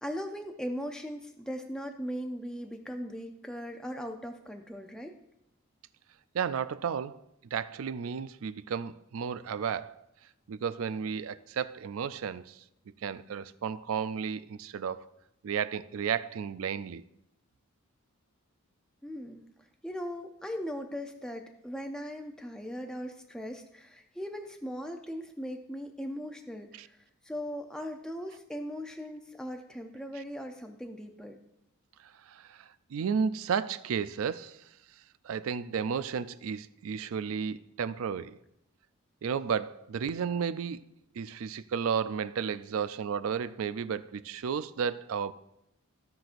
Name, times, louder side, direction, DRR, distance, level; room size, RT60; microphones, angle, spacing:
voice 1, 0.0-5.1 19.0-19.4 19.8-27.0 27.2-31.4, equal, 5° left, 0.5 m, -39 dB
voice 2, 6.3-7.2 7.5-10.0 10.5-12.6 13.0-15.1 15.4-17.0 26.8-26.9 32.0-34.7 35.2-38.4 39.2-40.8 41.2-45.3, right 7 dB, 75° right, 0.4 m, -33 dB
15.5 x 5.9 x 2.6 m
head